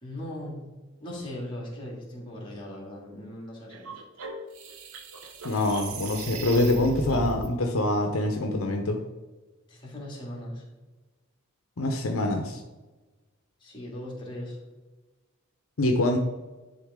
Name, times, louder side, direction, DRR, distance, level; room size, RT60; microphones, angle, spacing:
voice 1, 0.0-0.6 1.0-3.9 9.7-10.6 13.6-14.6, left 1 dB, 20° left, -3 dB, 2.3 m, -38 dB
sound 1, 3.7-7.5, right 3 dB, 85° right, 0.9 m, -37 dB
voice 2, 5.4-9.0 11.8-12.6 15.8-16.2, left 2 dB, 70° left, 4 dB, 0.7 m, -25 dB
10.5 x 4.0 x 3.6 m, 1.2 s
head